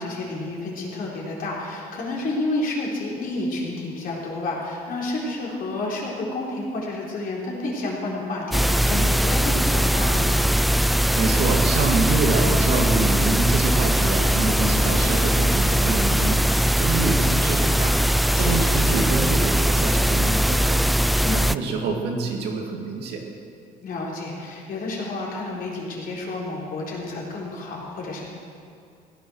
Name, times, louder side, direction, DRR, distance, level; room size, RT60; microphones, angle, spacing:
voice 1, 0.0-10.3 18.3-18.7 21.2-21.4 23.8-28.3, left 2 dB, 55° left, -3 dB, 4.0 m, -30 dB
sound 1, 8.5-21.5, right 1 dB, ahead, 0.3 m, -20 dB
voice 2, 11.2-16.4 16.8-18.0 18.4-20.9 21.3-23.2, right 3 dB, 80° right, 1 dB, 2.3 m, -26 dB
16.5 x 10.5 x 6.3 m, 2.5 s
cardioid pair, 110°, 17 cm